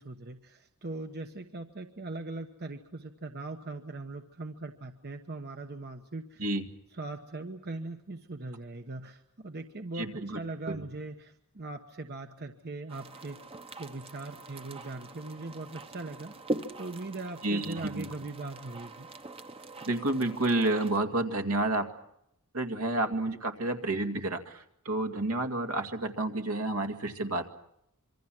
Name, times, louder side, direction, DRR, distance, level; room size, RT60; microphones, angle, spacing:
voice 1, 0.0-6.4 6.9-13.4 13.8-16.3 16.8-19.1, right 2 dB, 45° right, 6 dB, 1.1 m, -40 dB
voice 2, 10.0-10.4 10.7-10.8 17.4-18.1 19.8-21.9 22.5-27.4, right 2 dB, 70° right, 6 dB, 2.2 m, -30 dB
sound 1, 12.9-21.0, right 2 dB, 25° right, 1.1 m, -42 dB
26.5 x 24.0 x 6.2 m, 0.78 s
head